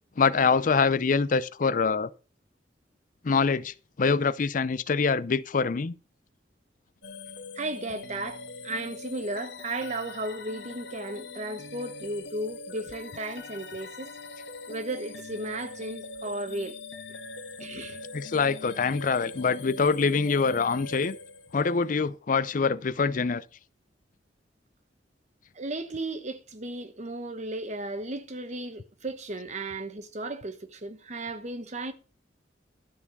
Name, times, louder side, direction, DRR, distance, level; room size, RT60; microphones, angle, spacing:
voice 1, 0.2-2.1 3.2-5.9 18.1-21.2 21.5-23.4, left 5 dB, 50° left, 0.5 m, -25 dB
sound 1, 7.0-21.8, left 3 dB, 85° left, 1.8 m, -42 dB
voice 2, 7.5-14.1 14.7-16.8 17.6-18.0 25.5-31.9, right 2 dB, 40° right, 1.1 m, -35 dB
12.5 x 4.6 x 6.9 m
head